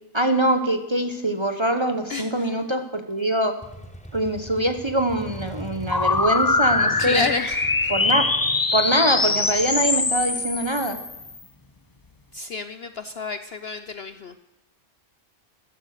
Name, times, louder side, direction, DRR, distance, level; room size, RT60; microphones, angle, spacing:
voice 1, 0.1-3.6 4.1-7.3 7.9-8.3 8.7-11.0, right 1 dB, 20° right, 7 dB, 0.9 m, -23 dB
voice 2, 2.1-2.5 7.0-7.9 12.3-14.5, left 4 dB, 55° left, 10 dB, 0.8 m, -30 dB
Motorcycle, 3.6-11.3, equal, 5° left, 1.0 m, -40 dB
sound 1, 5.9-11.4, left 3 dB, 25° left, 0.5 m, -23 dB
14.5 x 12.0 x 6.6 m, 0.93 s
omnidirectional pair, 1.5 m